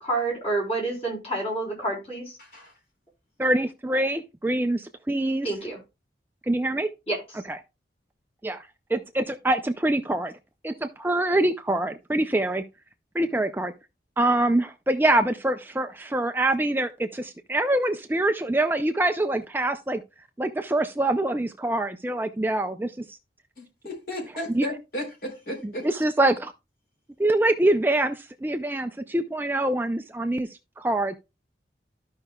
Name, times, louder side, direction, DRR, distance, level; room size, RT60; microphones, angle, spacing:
voice 1, 0.0-2.4 5.4-5.8 7.1-7.2, right 2 dB, 35° left, 4.0 m, -28 dB
voice 2, 2.4-2.7 23.6-25.9, equal, 55° left, 3.8 m, -34 dB
voice 3, 3.4-5.5 6.4-6.9 7.5-7.6 8.4-10.3 10.6-12.6 13.1-13.7 14.2-20.0 20.4-23.2 24.5-24.7 25.6-26.5 27.2-31.2, right 1 dB, 10° right, 0.4 m, -25 dB
13.5 x 5.5 x 2.3 m
head